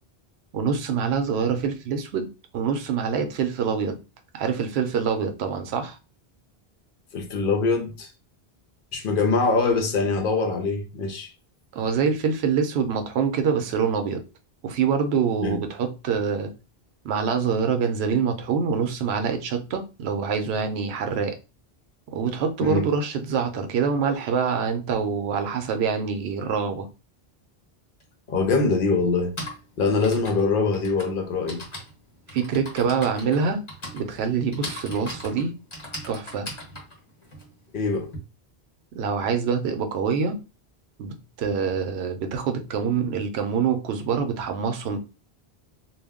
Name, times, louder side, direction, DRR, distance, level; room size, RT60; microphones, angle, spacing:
voice 1, 0.5-2.3 2.5-4.0 4.3-6.0 11.7-14.2 14.6-16.5 17.0-21.4 22.1-26.9 32.3-33.6 33.9-35.5 36.1-36.5 38.9-40.4 41.0-45.0, right 6 dB, 85° right, 0.8 m, -25 dB
voice 2, 7.1-8.1 8.9-11.3 15.4-15.6 22.6-22.9 28.3-29.4 29.8-31.6 37.7-38.1, left 4 dB, 60° left, 0.7 m, -23 dB
Typing, 28.0-28.1 29.1-38.2, left 1 dB, 30° left, 0.9 m, -39 dB
2.2 x 2.0 x 3.5 m
omnidirectional pair, 1.0 m